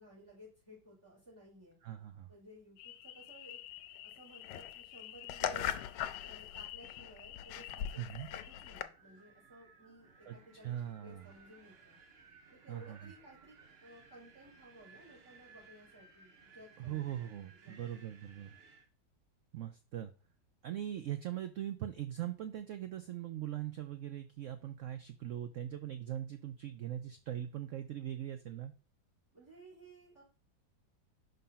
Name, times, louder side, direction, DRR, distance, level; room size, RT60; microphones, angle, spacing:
voice 1, 0.0-1.8 2.3-3.6 4.0-5.8 6.2-7.9 8.3-12.0 12.5-13.5 13.8-17.9 29.3-30.2, right 1 dB, 15° right, -7 dB, 3.8 m, -57 dB
voice 2, 1.8-2.3 8.0-8.3 10.2-10.4 10.6-11.3 12.7-13.1 16.8-18.5 19.5-20.1 20.6-28.7, right 11 dB, 80° right, 9 dB, 0.6 m, -41 dB
sound 1, 2.8-8.8, left 10 dB, 90° left, 1.3 m, -41 dB
Wind, 8.9-18.9, right 4 dB, 45° right, 1.0 m, -61 dB
5.6 x 3.8 x 5.6 m, 0.36 s
omnidirectional pair, 1.9 m